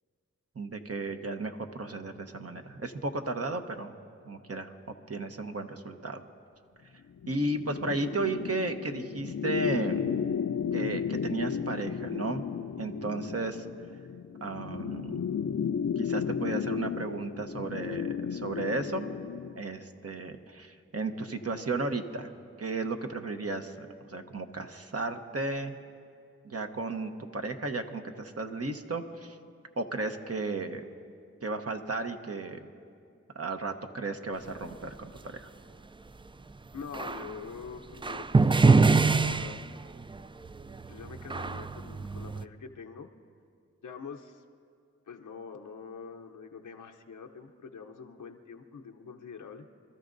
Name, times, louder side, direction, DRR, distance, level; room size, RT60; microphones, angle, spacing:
voice 1, 0.6-3.9 4.2-4.7 5.1-6.2 7.3-10.1 10.7-12.4 12.8-13.6 14.4-15.3 16.0-19.1 19.6-22.3 22.6-25.7 26.4-29.4 29.8-30.8 31.4-32.6 33.3-35.5, right 3 dB, 50° right, 5 dB, 1.0 m, -34 dB
sound 1, 7.2-19.6, left 7 dB, 55° left, 0.5 m, -33 dB
voice 2, 36.7-39.6 40.9-43.1 43.8-44.4 45.1-49.7, left 5 dB, 90° left, 3 dB, 0.7 m, -45 dB
sound 2, 36.9-37.3 38.0-40.2 40.5-42.4, right 4 dB, 15° right, 0.3 m, -24 dB
25.5 x 13.0 x 2.6 m, 2.3 s
cardioid pair, 40°, 30 cm